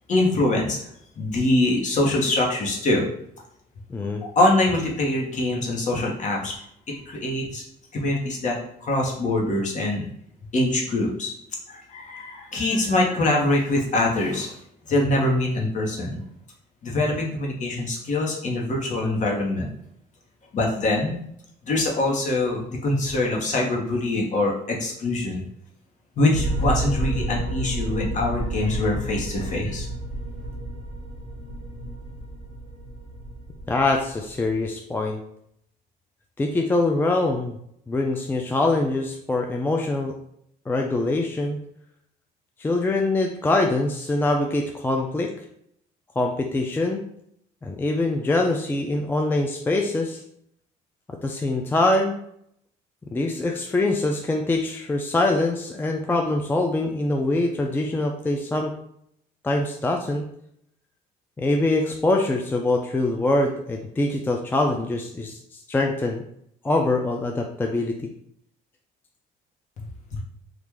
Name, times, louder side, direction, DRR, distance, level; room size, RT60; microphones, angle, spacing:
voice 1, 0.1-0.8 1.2-3.1 4.3-6.6 7.0-7.6 7.9-10.1 10.5-11.3 11.7-14.6 14.9-16.2 16.8-19.7 20.5-21.2 21.6-25.4 26.2-29.9, left 2 dB, 45° left, 0 dB, 1.0 m, -24 dB
voice 2, 3.9-4.2 33.7-35.2 36.4-37.6 37.9-40.1 40.7-41.6 42.6-45.3 46.2-47.0 47.6-50.2 51.2-52.1 53.1-58.8 59.4-60.3 61.4-65.4 65.7-66.2 66.6-68.1, left 2 dB, 10° left, 2 dB, 0.3 m, -24 dB
sound 1, 26.3-34.6, right 1 dB, 15° right, 1.2 m, -30 dB
3.0 x 2.4 x 3.6 m, 0.71 s
cardioid pair, 110°, 17 cm